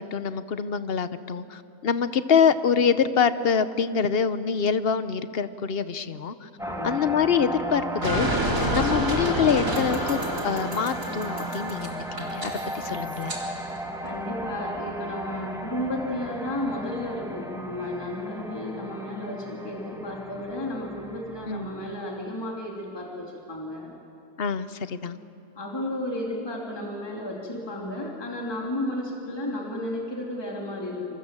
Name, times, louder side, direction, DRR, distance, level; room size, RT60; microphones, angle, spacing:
voice 1, 0.0-6.5 6.8-8.3 8.7-13.3 21.5-21.7 24.4-25.2, left 7 dB, 50° left, 12 dB, 0.9 m, -25 dB
voice 2, 6.6-7.0 14.0-23.9 25.5-31.2, left 1 dB, 15° left, -2 dB, 2.9 m, -33 dB
sound 1, 6.6-22.0, right 1 dB, ahead, 1.7 m, -35 dB
sound 2, 8.0-13.4, right 1 dB, 60° right, 4.4 m, -29 dB
27.0 x 25.0 x 7.5 m, 2.7 s
omnidirectional pair, 1.6 m